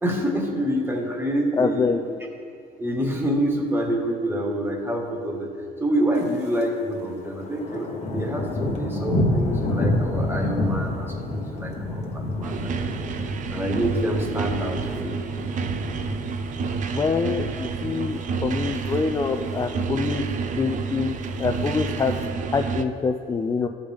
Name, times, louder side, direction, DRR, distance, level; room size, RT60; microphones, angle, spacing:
voice 1, 0.0-2.1 2.8-5.5 5.8-12.9 13.5-15.2, right 1 dB, 15° right, 0 dB, 1.5 m, -27 dB
voice 2, 1.6-2.0 16.9-20.2 20.6-22.1 22.5-23.7, left 5 dB, 20° left, 4 dB, 0.4 m, -25 dB
Thunder, 6.2-6.7 7.0-17.3 17.7-18.1 18.5-19.0 19.2-19.3 19.5-19.6 20.0-20.5 21.3-22.3, left 1 dB, 40° left, 1.1 m, -29 dB
sound 1, 12.4-22.8, right 5 dB, 50° right, 0.5 m, -29 dB
13.5 x 5.2 x 3.5 m, 2.4 s
cardioid pair, 110°, 17 cm